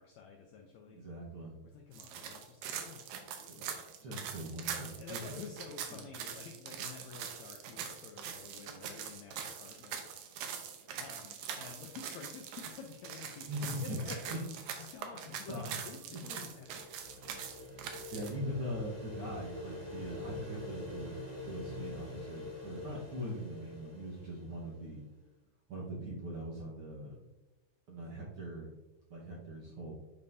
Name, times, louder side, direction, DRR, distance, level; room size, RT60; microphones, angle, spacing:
voice 1, 0.0-1.0 1.7-3.7 4.9-10.0 11.0-14.4 14.7-16.7, left 6 dB, 80° left, 2 dB, 1.6 m, -50 dB
voice 2, 0.9-1.5 3.4-3.7 4.0-5.4 5.9-6.0 13.5-14.0 15.1-15.2 15.5-15.8 16.3-16.4 18.1-21.2 21.4-25.0 25.7-27.2 27.9-28.7 29.1-29.9, equal, 55° right, -5 dB, 1.7 m, -41 dB
sound 1, 1.9-18.3, right 8 dB, 80° right, 2.5 m, -43 dB
sound 2, 16.2-24.9, left 2 dB, 15° right, 2.0 m, -46 dB
9.6 x 5.4 x 2.7 m, 1.0 s
omnidirectional pair, 3.9 m